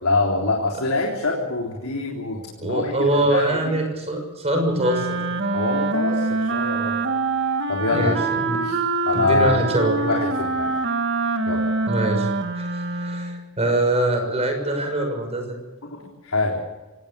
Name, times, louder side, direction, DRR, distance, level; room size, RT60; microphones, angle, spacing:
voice 1, 0.0-3.8 5.5-7.0 7.7-8.1 8.6-9.6 10.0-10.8 11.5-11.7 15.8-16.6, left 3 dB, 90° left, -1 dB, 3.6 m, -25 dB
voice 2, 2.6-5.2 7.9-8.6 9.1-10.0 11.9-15.6, right 1 dB, 30° right, 5 dB, 6.4 m, -23 dB
Wind instrument woodwind instrument, 4.8-13.4, right 3 dB, 55° right, 2.1 m, -25 dB
25.5 x 18.5 x 7.0 m, 1.1 s
head